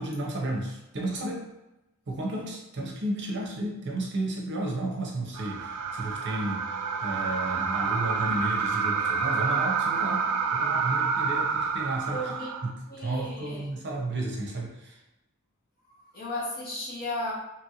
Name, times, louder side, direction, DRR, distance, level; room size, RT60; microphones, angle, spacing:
voice 1, 0.0-1.5 2.1-15.0, right 1 dB, 50° right, -1 dB, 0.6 m, -33 dB
sound 1, 5.3-12.7, right 5 dB, 90° right, 0.3 m, -28 dB
voice 2, 12.1-12.5 12.9-13.6 16.1-17.3, left 1 dB, 45° left, -5 dB, 1.0 m, -34 dB
2.9 x 2.5 x 2.8 m, 0.97 s
head